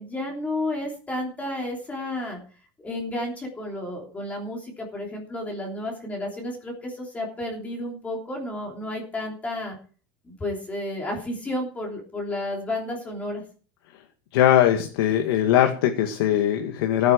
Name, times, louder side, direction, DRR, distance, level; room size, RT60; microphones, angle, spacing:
voice 1, 0.0-2.4 2.8-9.8 10.2-13.4, left 1 dB, 10° left, -1 dB, 3.2 m, -31 dB
voice 2, 14.3-17.1, left 11 dB, 90° left, 4 dB, 2.0 m, -20 dB
15.5 x 9.3 x 4.6 m, 0.40 s
cardioid pair, 170°, 12 cm